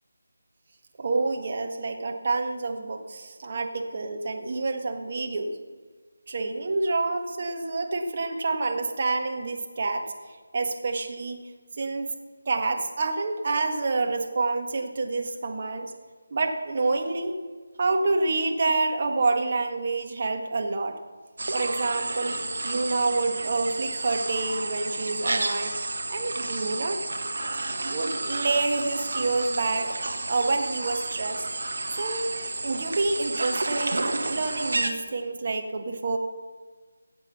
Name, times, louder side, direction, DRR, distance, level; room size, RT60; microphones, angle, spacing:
voice 1, 1.0-5.5 6.3-10.1 10.5-11.4 11.8-12.1 12.4-15.9 16.3-17.3 17.8-21.0 21.5-22.3 22.6-25.7 26.1-27.0 27.8-29.9 30.3-31.5 32.0-32.3 32.6-36.2, right 3 dB, 40° right, 3 dB, 1.6 m, -27 dB
sound 1, 21.4-34.9, right 2 dB, 60° right, 1.5 m, -31 dB
17.0 x 8.1 x 5.9 m, 1.5 s
figure-of-eight pair, 160°, 0 cm